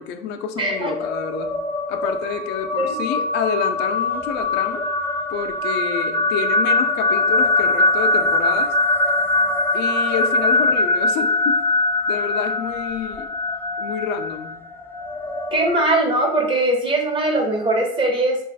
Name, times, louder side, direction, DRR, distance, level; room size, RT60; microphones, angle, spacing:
voice 1, 0.0-1.6 1.9-4.8 5.3-8.7 9.7-11.6 12.1-13.3 13.8-14.6, left 7 dB, 85° left, 6 dB, 0.5 m, -28 dB
sound 1, 0.6-15.8, left 2 dB, 15° left, 0.3 m, -22 dB
voice 2, 0.6-0.9 2.8-2.9 15.5-18.4, right 2 dB, 30° right, 2 dB, 1.0 m, -20 dB
3.1 x 2.4 x 4.0 m, 0.70 s
cardioid pair, 110°, 17 cm